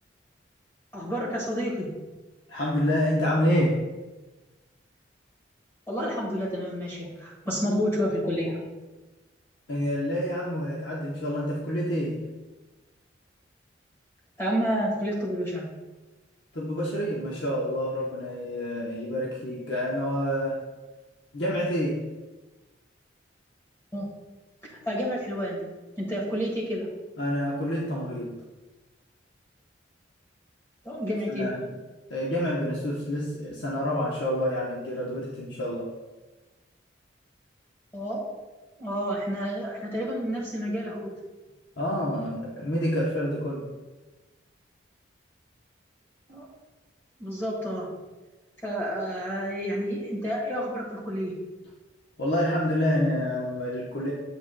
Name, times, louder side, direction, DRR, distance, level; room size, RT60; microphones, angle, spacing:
voice 1, 0.9-1.9 5.9-8.6 14.4-15.7 23.9-24.1 24.6-25.6 26.0-26.9 30.8-31.5 37.9-38.2 38.8-41.1 46.3-46.5 47.2-47.9 48.6-51.4, equal, 15° left, -5 dB, 1.3 m, -29 dB
voice 2, 2.5-3.8 9.7-12.2 16.5-20.6 21.3-22.0 27.2-28.4 31.3-31.7 32.1-35.9 41.8-43.7 52.2-54.1, equal, 65° left, -4 dB, 0.9 m, -28 dB
7.8 x 6.3 x 2.2 m, 1.2 s
head